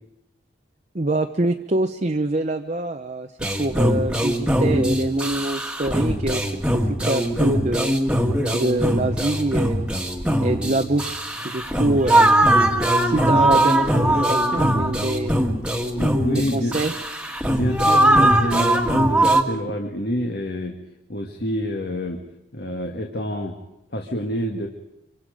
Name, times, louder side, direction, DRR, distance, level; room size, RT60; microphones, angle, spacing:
voice 1, 0.9-3.3 3.6-7.9 8.5-9.9 10.4-12.4 13.0-15.4 16.3-16.9, right 2 dB, 40° right, 4 dB, 0.8 m, -25 dB
sound 1, 3.4-19.4, right 1 dB, 5° right, 1.7 m, -20 dB
voice 2, 15.9-16.8 17.5-20.7 21.1-22.2 22.5-23.5 23.9-24.7, equal, 55° left, 2 dB, 1.7 m, -27 dB
26.0 x 25.0 x 5.2 m, 0.86 s
head